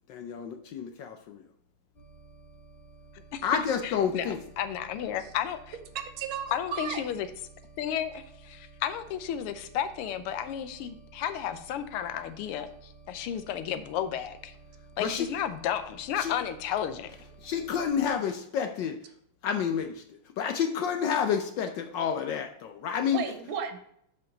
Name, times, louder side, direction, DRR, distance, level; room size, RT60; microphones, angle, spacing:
voice 1, 0.1-1.4 3.4-4.4 15.0-15.3 16.2-16.3 17.4-19.0 19.4-20.0 20.4-23.2, left 7 dB, 75° left, 6 dB, 1.1 m, -29 dB
sound 1, 1.9-18.2, right 4 dB, 25° left, 2.0 m, -53 dB
voice 2, 3.8-5.8 6.5-7.3 7.8-14.5 15.0-17.1, left 9 dB, 90° left, 10 dB, 1.6 m, -33 dB
voice 3, 5.9-7.0 23.1-23.8, right 7 dB, 75° right, 8 dB, 1.5 m, -34 dB
7.2 x 5.5 x 3.9 m, 0.70 s
omnidirectional pair, 2.4 m